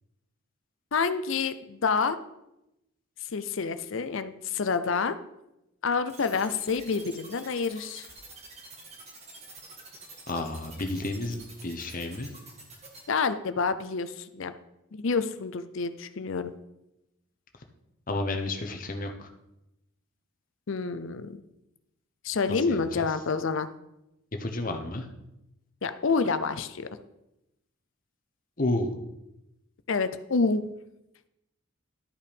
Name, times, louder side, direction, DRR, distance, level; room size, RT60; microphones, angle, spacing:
voice 1, 0.9-2.2 3.3-5.2 5.8-8.1 13.1-14.5 14.9-16.5 20.7-21.4 22.2-23.7 25.8-26.9 29.9-30.7, left 4 dB, 65° left, 11 dB, 0.6 m, -28 dB
sound 1, 6.1-13.0, right 3 dB, 30° right, 1.9 m, -47 dB
voice 2, 10.3-12.3 18.1-19.3 22.5-23.1 24.4-25.1 28.6-29.0, left 2 dB, 40° left, 5 dB, 0.9 m, -31 dB
11.5 x 5.6 x 5.2 m, 0.90 s
head